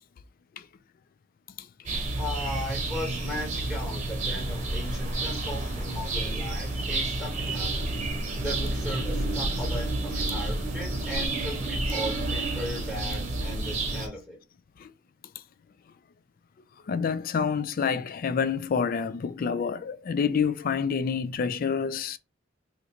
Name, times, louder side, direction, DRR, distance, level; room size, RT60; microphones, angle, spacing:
voice 1, 1.6-2.0 6.1-6.2 11.2-11.3 14.8-14.9 16.9-22.2, left 6 dB, 45° left, 0.3 m, -28 dB
sound 1, 1.9-14.1, right 2 dB, 40° right, 1.0 m, -30 dB
voice 2, 2.2-7.7 8.4-14.4, left 1 dB, 10° left, 1.0 m, -37 dB
2.9 x 2.5 x 4.2 m
head